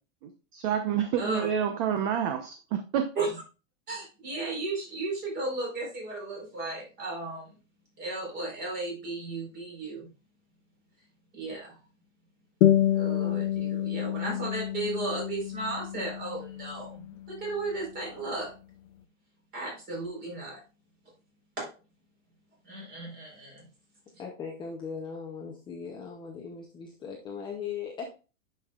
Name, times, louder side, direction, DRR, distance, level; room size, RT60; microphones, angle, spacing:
voice 1, 0.2-3.0, right 9 dB, 40° right, 6 dB, 0.9 m, -29 dB
voice 2, 1.2-1.5 3.2-3.3 3.9-7.5 8.0-10.1 11.3-11.8 12.9-18.5 19.5-20.6 21.6-21.7 22.6-23.6, right 2 dB, 25° right, -1 dB, 4.3 m, -35 dB
sound 1, 12.6-17.6, left 11 dB, 65° left, 0.8 m, -28 dB
voice 3, 24.2-28.0, left 6 dB, 10° left, -1 dB, 0.7 m, -38 dB
9.8 x 5.6 x 2.4 m, 0.32 s
supercardioid pair, 160°, 41 cm